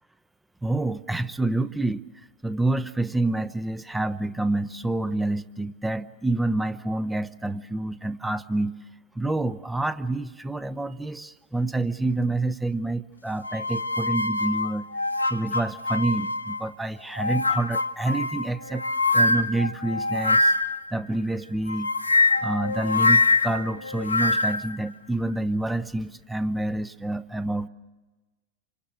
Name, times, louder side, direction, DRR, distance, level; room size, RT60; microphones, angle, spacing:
voice 1, 0.6-2.0 2.4-8.8 9.1-14.9 15.3-18.8 19.1-20.5 20.9-21.9 22.4-27.7, right 2 dB, 5° right, 13 dB, 0.9 m, -28 dB
sound 1, 13.4-16.7 17.1-20.9 21.7-24.7, left 3 dB, 80° left, 0.9 m, -24 dB
28.0 x 26.0 x 6.8 m, 1.2 s
figure-of-eight pair, 90°, 0 cm